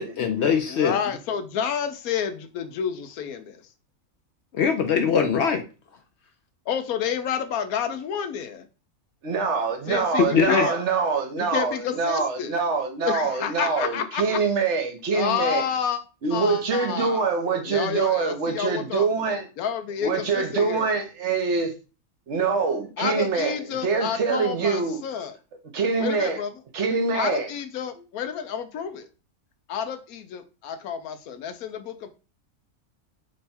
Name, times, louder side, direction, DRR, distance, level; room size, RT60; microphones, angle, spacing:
voice 1, 0.0-0.9 4.5-5.6 10.2-10.7, left 7 dB, 65° left, 0.7 m, -21 dB
voice 2, 0.7-3.7 6.7-8.6 9.9-10.7 11.4-12.6 13.0-14.4 15.1-16.0 16.3-17.3 17.7-19.1 19.6-21.0 23.0-25.4 26.0-26.5 27.1-29.1 29.7-32.1, left 8 dB, 80° left, 1.1 m, -29 dB
voice 3, 9.2-15.6 16.2-19.5 20.0-21.7 22.3-25.0 25.7-26.4 26.7-27.5, right 4 dB, 60° right, 1.0 m, -25 dB
3.4 x 3.2 x 4.2 m
omnidirectional pair, 1.5 m